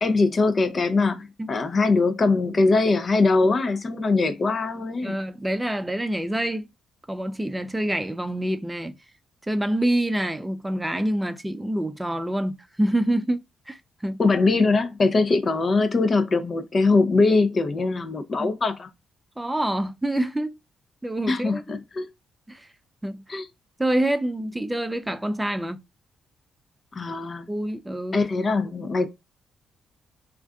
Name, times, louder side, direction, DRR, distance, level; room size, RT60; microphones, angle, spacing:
voice 1, 0.0-5.2 14.2-18.9 21.3-22.1 23.3-23.5 26.9-27.5 28.1-29.1, left 3 dB, 45° left, 0.5 m, -22 dB
voice 2, 5.0-6.7 7.1-9.0 9.4-14.2 18.4-18.5 19.4-20.6 21.0-21.6 22.5-22.7 23.0-23.4 23.8-25.8 27.5-28.2, right 1 dB, 10° right, 0.4 m, -26 dB
3.2 x 2.5 x 2.2 m
hypercardioid pair, 40°, 0 cm